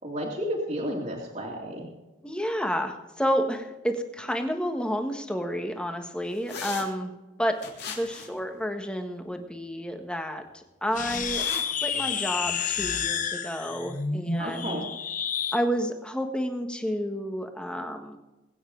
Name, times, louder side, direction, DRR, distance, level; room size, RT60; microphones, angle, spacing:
voice 1, 0.0-1.9 14.4-14.9, equal, 40° right, -4 dB, 2.5 m, -32 dB
voice 2, 2.2-7.1 7.4-7.6 7.9-11.5 11.8-14.8 15.5-18.2, equal, 5° left, 4 dB, 1.5 m, -30 dB
sound 1, 6.5-6.9 7.6-8.4 11.0-11.6, left 5 dB, 55° left, 3.4 m, -37 dB
sound 2, 10.9-15.6, left 7 dB, 40° left, 0.9 m, -30 dB
21.5 x 9.3 x 3.9 m, 1.1 s
head